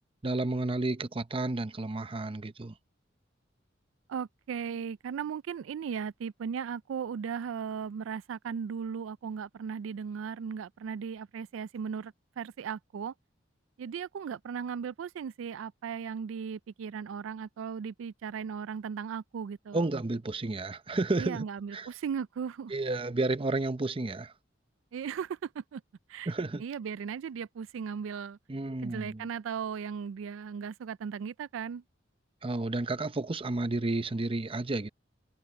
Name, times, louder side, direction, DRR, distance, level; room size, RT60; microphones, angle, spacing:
voice 1, 0.2-2.7 19.7-21.4 21.7-21.9 22.7-24.3 26.3-26.6 28.5-29.3 32.4-34.9, right 2 dB, 30° right, 0.7 m, -31 dB
voice 2, 4.1-13.1 13.8-19.9 21.2-22.7 24.9-25.8 26.1-26.3 26.6-28.4 28.8-31.8, right 7 dB, 80° right, 0.3 m, -37 dB
head